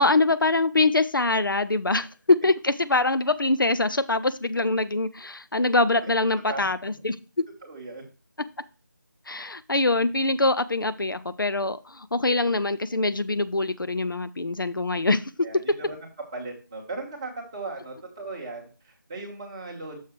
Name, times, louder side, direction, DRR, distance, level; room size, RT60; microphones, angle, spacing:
voice 1, 0.0-7.4 9.3-15.3, left 2 dB, 85° left, 14 dB, 0.6 m, -24 dB
voice 2, 7.6-8.0 15.4-20.0, right 3 dB, 15° right, -2 dB, 1.2 m, -37 dB
6.5 x 5.3 x 4.5 m, 0.34 s
figure-of-eight pair, 170°, 11 cm